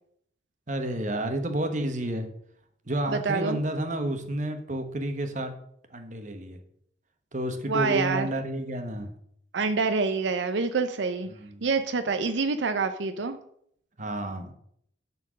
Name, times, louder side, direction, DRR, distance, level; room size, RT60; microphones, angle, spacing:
voice 1, 0.7-2.3 2.9-5.5 5.9-6.6 7.3-9.1 11.3-11.6 14.0-14.5, right 1 dB, 45° right, 6 dB, 1.1 m, -30 dB
voice 2, 3.1-3.6 7.7-8.3 9.5-11.3 11.6-13.4, right 4 dB, 85° right, 9 dB, 0.6 m, -26 dB
11.0 x 4.4 x 6.3 m, 0.69 s
head